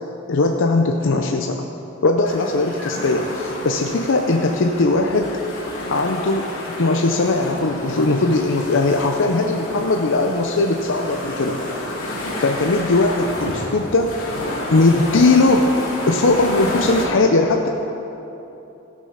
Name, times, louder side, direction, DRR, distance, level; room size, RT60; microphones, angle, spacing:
voice 1, 0.3-1.7 2.0-5.4 5.9-6.5 6.8-11.6 12.4-14.1 14.7-15.7 16.1-17.7, left 2 dB, 65° left, 3 dB, 0.6 m, -19 dB
sound 1, 2.2-17.1, left 1 dB, 80° left, 2.5 m, -30 dB
17.0 x 6.2 x 5.7 m, 2.9 s
head